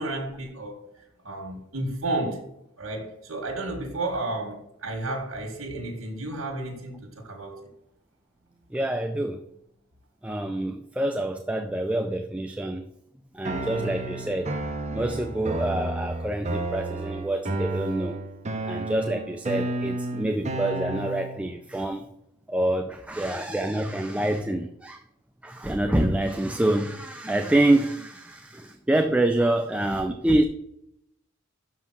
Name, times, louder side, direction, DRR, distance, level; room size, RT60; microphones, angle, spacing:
voice 1, 0.0-2.5 2.8-7.7, right 2 dB, 80° right, 1.7 m, -32 dB
voice 2, 8.7-9.4 10.2-12.8 13.3-14.5 14.9-18.2 18.6-22.0 22.5-25.0 25.4-30.4, right 1 dB, 5° right, 0.4 m, -26 dB
sound 1, 13.4-21.4, right 2 dB, 35° right, 0.9 m, -31 dB
6.4 x 5.6 x 6.0 m
head